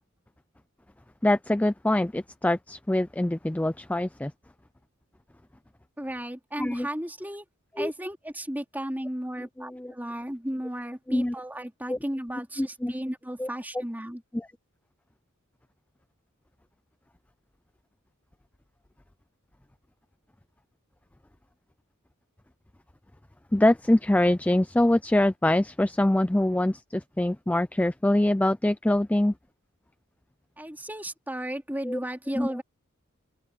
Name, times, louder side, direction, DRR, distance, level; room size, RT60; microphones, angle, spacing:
voice 1, 1.2-4.3 6.6-6.9 7.8-7.9 9.6-9.9 11.1-11.3 11.9-12.0 12.6-12.9 13.4-13.5 14.3-14.5 23.5-29.3 31.8-32.0 32.4-32.5, left 1 dB, 5° left, 0.4 m, -24 dB
voice 2, 6.0-7.4 7.8-14.2 30.6-32.6, right 1 dB, 10° right, 3.2 m, -34 dB
open air
head